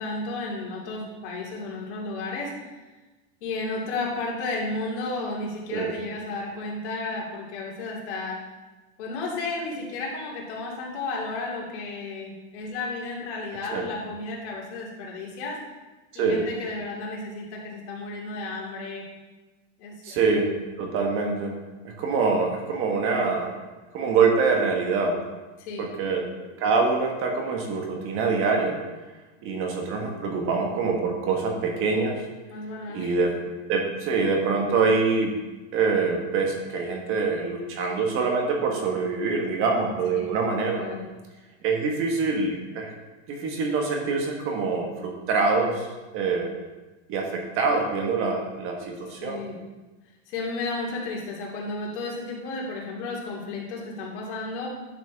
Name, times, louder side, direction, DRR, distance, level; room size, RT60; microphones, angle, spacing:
voice 1, 0.0-2.5 3.4-8.4 9.0-15.6 16.1-19.0 19.8-20.2 25.6-25.9 32.5-33.2 40.7-41.1 49.2-49.6 50.3-54.7, left 3 dB, 75° left, -3 dB, 3.0 m, -33 dB
voice 2, 16.1-16.5 20.0-20.5 20.8-21.5 21.8-23.5 23.9-25.2 25.8-26.3 26.6-28.8 29.4-32.2 32.9-33.4 33.7-35.3 35.7-40.9 41.6-42.9 43.3-45.8 46.1-46.5 47.1-49.4, right 4 dB, 35° right, 2 dB, 1.4 m, -25 dB
10.5 x 6.1 x 3.6 m, 1.2 s
supercardioid pair, 160°, 35 cm